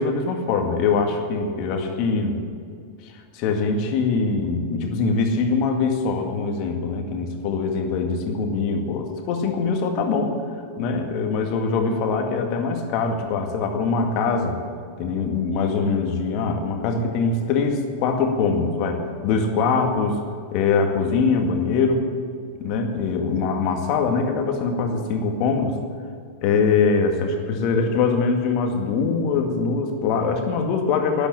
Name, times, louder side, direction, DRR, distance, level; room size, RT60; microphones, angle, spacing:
voice 1, 0.0-2.4 3.0-10.3 10.8-14.6 15.0-20.2 20.5-22.0 22.6-25.8 26.4-31.3, left 4 dB, 40° left, 4 dB, 2.0 m, -23 dB
12.0 x 11.0 x 8.6 m, 2.3 s
figure-of-eight pair, 90°, 0 cm